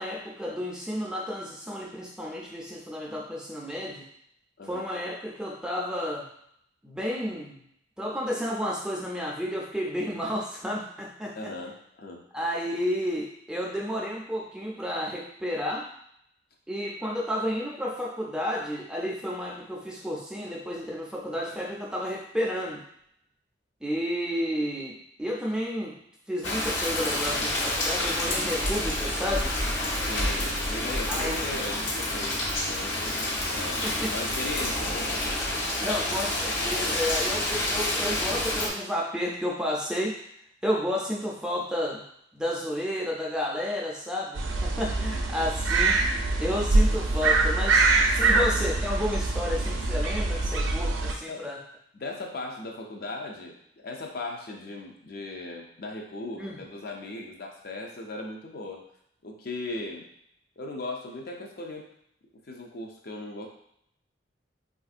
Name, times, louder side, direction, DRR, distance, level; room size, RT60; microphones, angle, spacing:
voice 1, 0.0-4.1 4.7-6.3 6.8-7.6 8.0-11.5 12.3-15.9 16.7-22.8 23.8-25.9 26.3-29.5 31.1-31.4 33.8-34.1 35.8-40.2 40.6-42.0 42.3-46.0 46.4-51.6 56.4-56.6, equal, 5° right, -3 dB, 0.4 m, -31 dB
voice 2, 11.3-12.2 30.1-32.4 32.7-33.2 33.5-33.8 34.1-35.1 35.8-36.0 36.9-37.0 45.0-45.2 48.3-48.5 50.8-50.9 51.2-51.5 51.9-53.6 53.8-58.8 59.2-60.1 60.6-61.9 62.5-63.5, left 2 dB, 50° left, 1 dB, 0.5 m, -38 dB
Rain, 26.4-38.7, left 1 dB, 75° left, 1.0 m, -28 dB
sound 1, 44.4-51.1, right 3 dB, 80° right, 0.4 m, -24 dB
3.4 x 2.5 x 2.4 m, 0.72 s
head